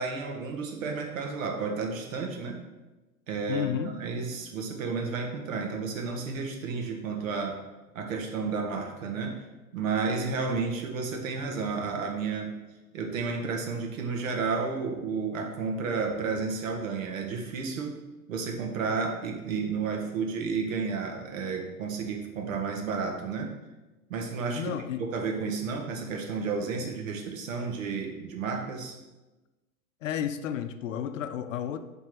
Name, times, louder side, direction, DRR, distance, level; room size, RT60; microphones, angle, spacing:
voice 1, 0.0-2.6 3.3-7.6 7.9-9.4 9.7-12.6 12.9-18.0 18.3-23.5 24.1-24.7 25.1-29.0, right 4 dB, 60° right, 2 dB, 1.5 m, -32 dB
voice 2, 3.5-3.9 24.5-25.1 26.8-26.9 30.0-31.8, left 9 dB, 60° left, 10 dB, 0.6 m, -32 dB
7.3 x 3.6 x 6.2 m, 1.1 s
figure-of-eight pair, 95°, 44 cm